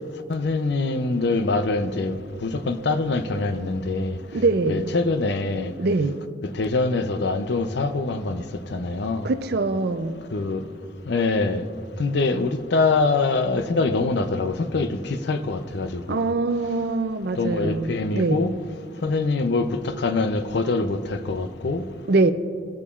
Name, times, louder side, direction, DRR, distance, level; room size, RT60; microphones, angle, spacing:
voice 1, 0.3-4.2 4.6-5.7 6.6-8.4 8.7-9.3 10.3-10.6 11.1-11.6 12.0-14.9 15.3-16.2 17.4-18.5 19.0-21.8, left 3 dB, 65° left, 0.6 m, -24 dB
voice 2, 4.3-4.9 5.8-6.2 9.2-10.2 16.1-18.4 22.1-22.3, right 3 dB, 60° right, 0.5 m, -23 dB
19.5 x 6.8 x 2.4 m
head